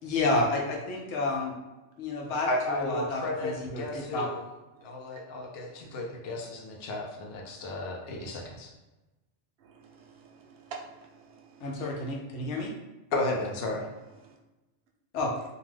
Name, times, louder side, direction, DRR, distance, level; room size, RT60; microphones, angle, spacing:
voice 1, 0.0-1.5 2.0-4.3 11.6-12.7 15.1-15.3, left 2 dB, 90° left, 0 dB, 0.9 m, -30 dB
voice 2, 2.5-4.4 4.8-8.7 13.1-13.9, left 2 dB, 65° left, 0 dB, 0.7 m, -33 dB
voice 3, 9.6-11.9 14.2-14.4, right 5 dB, 65° right, 2 dB, 0.7 m, -49 dB
2.4 x 2.2 x 3.2 m, 1.1 s
omnidirectional pair, 1.2 m